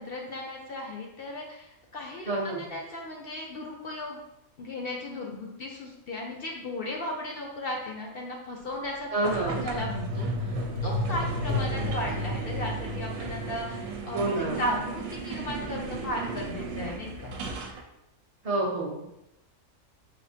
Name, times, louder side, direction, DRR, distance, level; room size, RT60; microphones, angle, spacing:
voice 1, 0.0-4.2 4.6-17.4, left 1 dB, 65° left, 0 dB, 0.6 m, -36 dB
voice 2, 2.3-2.6 9.1-9.6 14.1-14.6 18.4-19.1, right 2 dB, 40° right, -2 dB, 0.5 m, -28 dB
sound 1, 9.2-17.8, right 4 dB, 75° right, 1.0 m, -35 dB
sound 2, 9.8-14.2 14.5-14.6, left 3 dB, 80° left, 1.1 m, -33 dB
6.0 x 2.5 x 2.7 m, 0.88 s
omnidirectional pair, 1.5 m